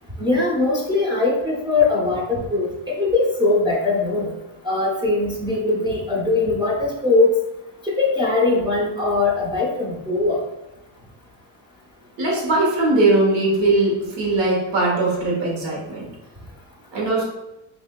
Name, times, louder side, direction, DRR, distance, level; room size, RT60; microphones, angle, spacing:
voice 1, 0.2-4.3 4.6-7.3 7.8-10.4, left 3 dB, 10° right, -6 dB, 0.5 m, -21 dB
voice 2, 12.2-16.0 16.9-17.2, right 2 dB, 70° right, -2 dB, 1.2 m, -20 dB
3.0 x 2.6 x 3.5 m, 0.95 s
cardioid pair, 165°, 45 cm